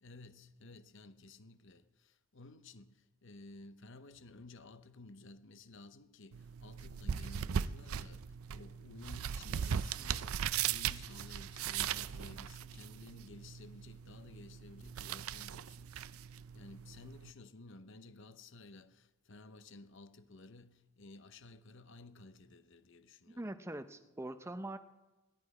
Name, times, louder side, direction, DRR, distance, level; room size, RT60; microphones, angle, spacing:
voice 1, 0.0-16.0 16.5-23.5, left 2 dB, 60° left, 0.8 m, -54 dB
sound 1, 6.3-17.3, right 8 dB, 85° right, 0.4 m, -39 dB
voice 2, 23.3-24.8, right 1 dB, 15° right, 0.6 m, -43 dB
17.5 x 12.0 x 4.9 m
head